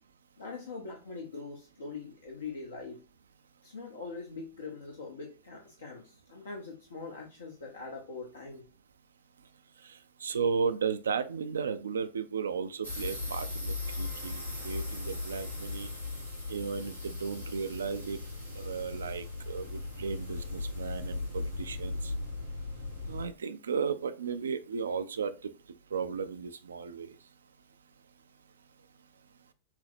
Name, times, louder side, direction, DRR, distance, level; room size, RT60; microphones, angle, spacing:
voice 1, 0.4-3.0 3.6-8.6, left 4 dB, 70° left, 0.7 m, -42 dB
voice 2, 10.2-15.9 16.5-18.2 18.6-21.9 23.1-25.3 25.9-27.1, right 6 dB, 70° right, 0.3 m, -34 dB
sound 1, 12.8-23.3, left 3 dB, 85° left, 1.2 m, -38 dB
5.7 x 2.0 x 2.5 m
figure-of-eight pair, 90°, 0 cm